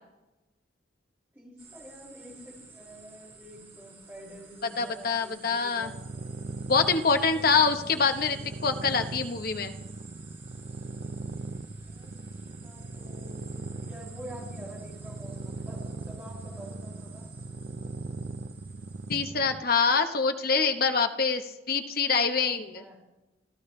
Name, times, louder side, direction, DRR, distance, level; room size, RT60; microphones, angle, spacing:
voice 1, 1.3-6.0 7.0-8.1 11.8-15.8 16.1-17.3 22.7-23.0, equal, 10° right, -5 dB, 5.7 m, -48 dB
sound 1, 1.6-19.2, right 4 dB, 30° right, 5.8 m, -53 dB
voice 2, 4.8-5.9 6.7-8.4 8.6-9.7 19.1-22.8, left 5 dB, 50° left, 6 dB, 1.0 m, -25 dB
sound 2, 5.8-19.6, right 3 dB, 50° right, 0.6 m, -39 dB
29.5 x 13.5 x 3.2 m, 1.1 s
head